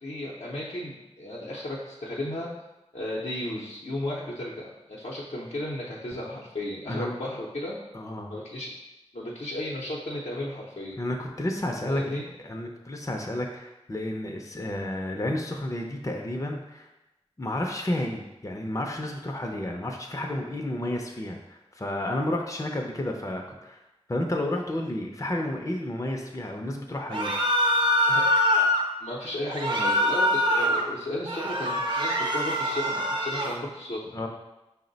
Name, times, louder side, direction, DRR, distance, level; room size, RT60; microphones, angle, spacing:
voice 1, 0.0-2.5 2.9-7.7 8.3-8.7 9.1-11.0 11.9-12.2 28.1-28.3 29.0-34.1, left 1 dB, 75° left, -6 dB, 0.6 m, -34 dB
voice 2, 7.9-8.3 11.0-12.0 12.4-16.9 17.4-23.8 24.1-27.3 34.1-34.3, left 1 dB, 30° left, 1 dB, 0.5 m, -31 dB
sound 1, 27.1-28.8 29.5-30.8 31.2-33.6, equal, 40° right, 0.6 m, -24 dB
5.2 x 2.1 x 3.9 m, 0.97 s
wide cardioid pair, 45°, 11 cm